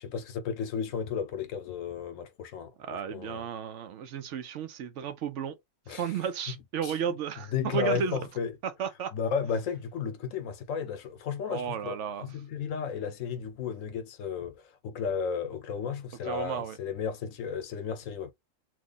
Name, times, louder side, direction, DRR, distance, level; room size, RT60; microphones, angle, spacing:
voice 1, 0.0-3.5 5.9-6.2 6.8-8.5 9.1-18.3, left 6 dB, 75° left, 1.0 m, -34 dB
voice 2, 2.8-5.6 5.9-8.2 8.6-9.1 11.5-12.3 16.3-16.8, right 7 dB, 70° right, 0.8 m, -33 dB
2.9 x 2.3 x 3.8 m
omnidirectional pair, 1.4 m